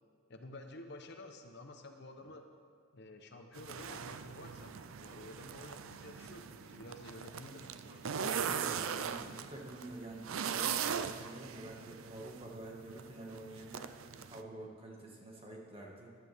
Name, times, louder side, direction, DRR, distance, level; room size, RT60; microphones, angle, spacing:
voice 1, 0.3-2.4 2.9-4.8 5.0-8.3, left 1 dB, 60° left, 5 dB, 0.9 m, -51 dB
sound 1, 3.5-14.4, right 7 dB, 90° right, 0.5 m, -40 dB
voice 2, 8.4-16.1, right 2 dB, 30° right, -2 dB, 1.9 m, -48 dB
15.0 x 11.5 x 3.6 m, 2.2 s
head